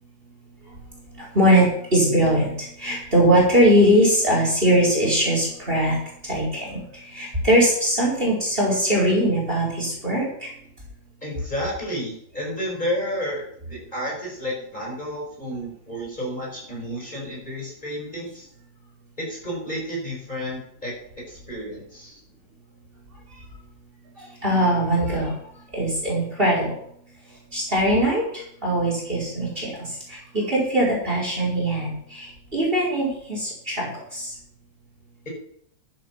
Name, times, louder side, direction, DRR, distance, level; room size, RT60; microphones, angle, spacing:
voice 1, 1.1-6.0 6.2-10.5 24.2-25.3 25.7-26.7 27.5-34.3, equal, 30° right, -3 dB, 5.1 m, -21 dB
voice 2, 11.2-18.5 19.2-22.2, equal, 25° left, -3 dB, 5.1 m, -31 dB
12.5 x 9.2 x 5.7 m, 0.67 s
omnidirectional pair, 2.0 m